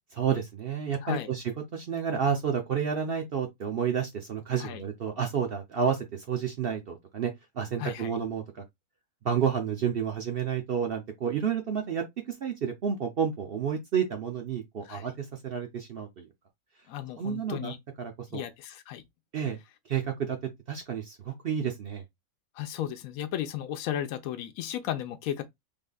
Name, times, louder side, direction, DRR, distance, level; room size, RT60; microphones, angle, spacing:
voice 1, 0.1-1.4 1.7-8.6 9.2-12.0 12.4-16.3 17.2-18.4 19.3-19.6 19.9-20.4 20.7-22.0, right 7 dB, 55° right, 0.7 m, -30 dB
voice 2, 7.8-8.1 14.8-15.1 16.9-17.8 18.3-19.0 22.6-25.4, left 11 dB, 80° left, 1.0 m, -34 dB
3.6 x 3.4 x 2.3 m
omnidirectional pair, 1.5 m